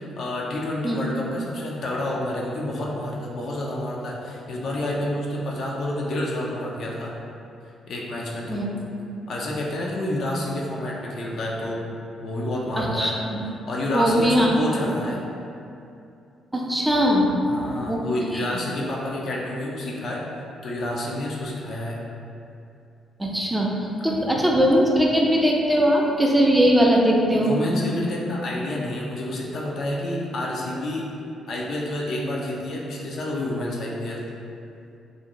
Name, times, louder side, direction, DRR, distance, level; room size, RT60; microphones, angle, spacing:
voice 1, 0.0-7.1 7.9-8.7 9.3-11.8 12.2-13.1 13.6-15.2 17.4-20.2 20.6-22.0 24.3-24.5 27.3-31.1 31.5-34.2, left 1 dB, 55° left, -3 dB, 0.4 m, -29 dB
voice 2, 12.8-13.4 13.9-14.5 16.5-17.3 17.9-18.0 18.3-18.6 23.2-23.7 24.0-27.5, equal, 10° right, -2 dB, 0.4 m, -20 dB
2.5 x 2.0 x 2.9 m, 2.6 s
figure-of-eight pair, 40°, 0 cm